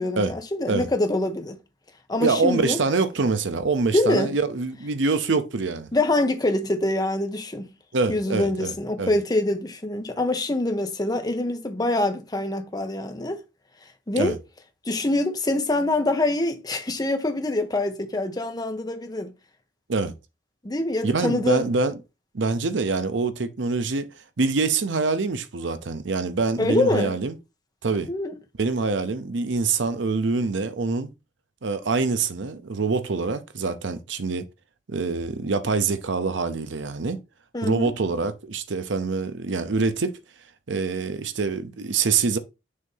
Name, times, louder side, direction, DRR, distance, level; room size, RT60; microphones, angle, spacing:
voice 1, 0.0-1.6 2.1-2.8 3.9-4.3 5.9-7.7 8.1-13.4 14.1-14.3 14.8-19.3 20.6-21.7 26.6-27.1 28.1-28.4 37.5-37.9, left 2 dB, 20° left, 0.8 m, -25 dB
voice 2, 2.2-5.9 7.9-9.1 14.1-14.4 19.9-20.1 21.0-22.0 22.3-24.1 24.4-27.4 27.8-28.1 28.6-31.1 31.6-34.5 34.9-37.2 37.6-40.2 40.7-42.4, right 4 dB, 80° right, 0.7 m, -25 dB
6.5 x 2.8 x 5.4 m
head